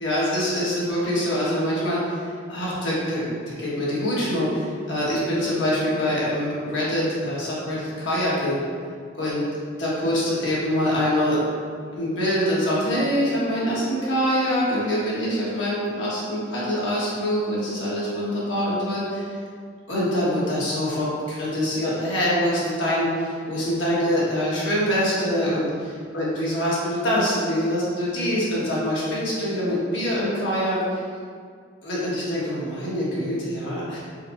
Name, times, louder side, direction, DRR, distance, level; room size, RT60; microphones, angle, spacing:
voice 1, 0.0-2.2 2.5-3.3 3.6-8.6 9.1-9.5 9.8-11.4 11.9-19.2 19.9-25.7 26.1-30.8 31.8-34.0, equal, 85° left, -7 dB, 1.3 m, -24 dB
4.4 x 3.9 x 2.5 m, 2.1 s
head